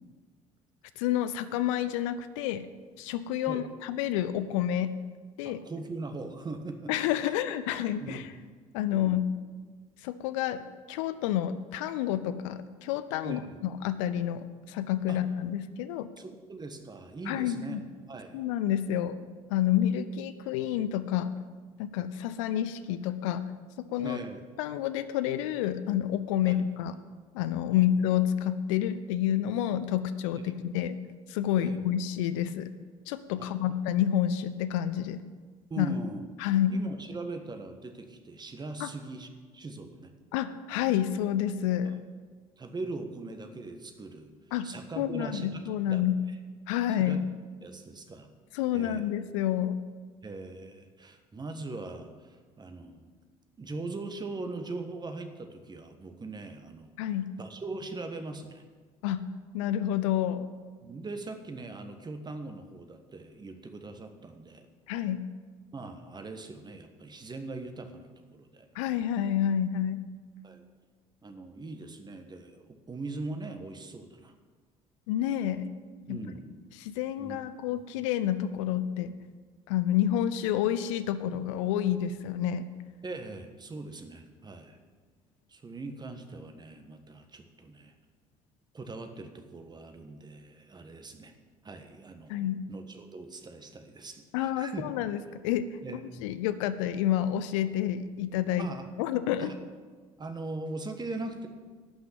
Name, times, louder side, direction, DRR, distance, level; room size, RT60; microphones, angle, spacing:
voice 1, 1.0-2.7 3.0-4.9 5.4-5.6 6.9-8.2 8.7-9.3 10.0-10.6 10.9-16.1 17.3-17.8 18.3-19.2 19.5-21.3 21.8-23.4 23.9-24.2 24.6-26.9 27.3-31.0 31.3-32.7 33.1-35.2 35.8-35.9 36.4-36.8 38.8-38.9 40.3-42.0 44.5-44.7 45.0-46.2 46.7-47.2 48.5-49.8 57.0-57.3 59.0-59.2 59.5-60.5 64.9-65.2 68.7-70.0 75.1-75.7 76.1-76.2 76.7-79.1 79.7-82.7 92.3-92.6 94.3-95.7 96.2-98.7 99.0-99.5, left 11 dB, 65° left, 14 dB, 0.6 m, -29 dB
voice 2, 5.4-6.9 8.0-8.3 8.9-9.2 13.2-13.6 15.1-15.2 16.2-17.8 18.1-18.5 24.0-24.4 26.5-26.6 27.7-27.8 30.4-30.7 31.5-31.8 33.4-33.8 35.7-36.3 36.7-40.1 42.6-44.3 44.6-46.4 46.9-47.2 47.6-48.3 48.7-49.1 50.2-53.1 53.6-56.9 57.4-58.6 60.8-64.7 65.7-68.7 70.4-70.6 71.2-74.3 76.1-76.6 77.2-77.5 77.8-77.9 83.0-84.8 85.5-87.9 88.7-91.3 91.6-94.8 95.8-96.0 98.6-98.9 99.4-99.6 100.2-101.5, right 3 dB, 25° right, 6 dB, 1.4 m, -41 dB
12.0 x 5.9 x 8.8 m, 1.5 s
figure-of-eight pair, 55°, 18 cm